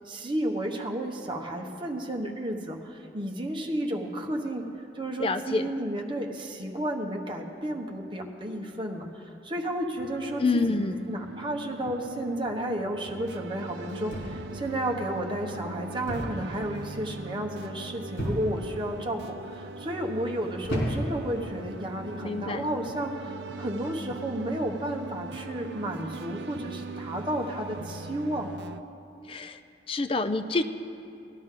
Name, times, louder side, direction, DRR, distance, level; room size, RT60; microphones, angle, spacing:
voice 1, 0.0-4.6 4.9-10.8 11.1-28.5, right 1 dB, 30° right, 1 dB, 1.0 m, -32 dB
voice 2, 5.2-5.6 10.4-11.1 22.2-22.7 29.3-29.6 29.9-30.6, left 3 dB, 30° left, 9 dB, 0.5 m, -27 dB
sound 1, 10.0-28.8, right 3 dB, 80° right, 0.5 m, -41 dB
sound 2, 14.1-14.6 16.1-16.5 16.7-17.2 18.2-18.7 19.4-19.8 20.6-21.3 22.2-22.5, equal, 85° left, 3.4 m, -32 dB
18.5 x 11.5 x 3.8 m, 2.6 s
head